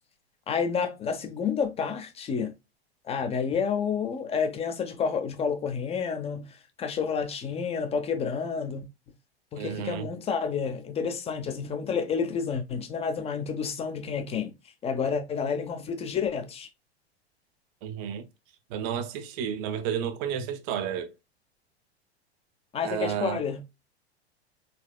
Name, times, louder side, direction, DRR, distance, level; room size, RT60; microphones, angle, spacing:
voice 1, 0.5-2.5 3.0-8.8 9.5-14.5 14.8-16.7 22.7-23.6, left 6 dB, 20° left, 0.7 m, -30 dB
voice 2, 9.6-10.1 17.8-18.3 18.7-21.1 22.8-23.4, right 8 dB, 35° right, 0.7 m, -31 dB
4.3 x 4.2 x 2.2 m
figure-of-eight pair, 90°, 32 cm